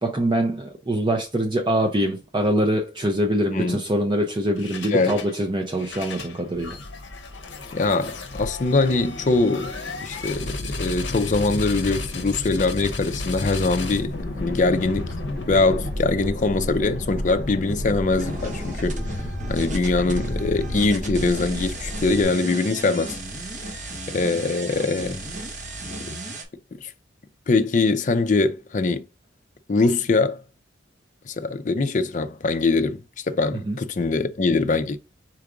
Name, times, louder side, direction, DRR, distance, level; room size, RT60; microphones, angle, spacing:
voice 1, 0.0-6.8 33.7-33.8, right 1 dB, 25° right, 0.5 m, -24 dB
sound 1, 4.6-5.3 5.7-22.6, left 2 dB, 75° left, 0.7 m, -34 dB
voice 2, 7.7-9.7 10.0-14.1 14.4-15.1 15.5-19.0 19.5-23.2 24.1-25.2 26.8-26.9 27.5-29.0 29.7-30.4 31.3-35.0, left 3 dB, 40° left, 0.4 m, -22 dB
sound 2, 13.9-22.2, equal, 75° right, 1.8 m, -33 dB
sound 3, 18.2-26.4, right 1 dB, 40° right, 1.0 m, -34 dB
4.5 x 2.4 x 4.8 m
head